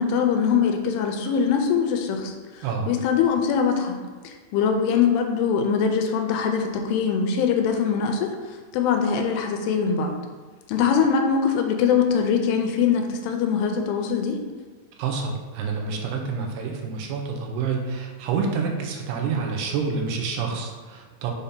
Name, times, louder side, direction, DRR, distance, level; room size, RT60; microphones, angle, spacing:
voice 1, 0.0-4.0 4.2-8.4 8.7-10.1 10.7-14.4, left 6 dB, 85° left, 4 dB, 2.6 m, -22 dB
voice 2, 15.0-21.3, right 5 dB, 85° right, 1 dB, 2.7 m, -28 dB
7.0 x 2.8 x 5.1 m, 1.4 s
omnidirectional pair, 4.7 m